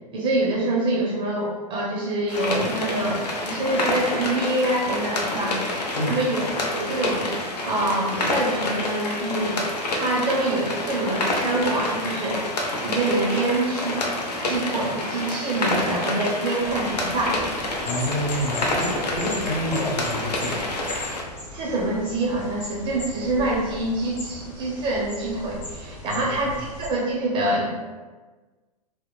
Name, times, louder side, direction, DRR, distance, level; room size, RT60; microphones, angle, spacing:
voice 1, 0.1-5.6 6.0-7.3 7.6-9.6 9.9-12.4 12.8-14.0 14.4-17.4 21.5-27.7, right 2 dB, 25° right, -3 dB, 0.5 m, -25 dB
sound 1, 2.3-21.2, left 2 dB, 75° left, 0.6 m, -28 dB
sound 2, 16.6-26.9, left 1 dB, 45° left, 1.2 m, -38 dB
voice 2, 17.8-20.7 26.0-26.6, left 1 dB, 20° left, -4 dB, 0.6 m, -28 dB
2.8 x 2.0 x 2.2 m, 1.3 s
hypercardioid pair, 110°, 21 cm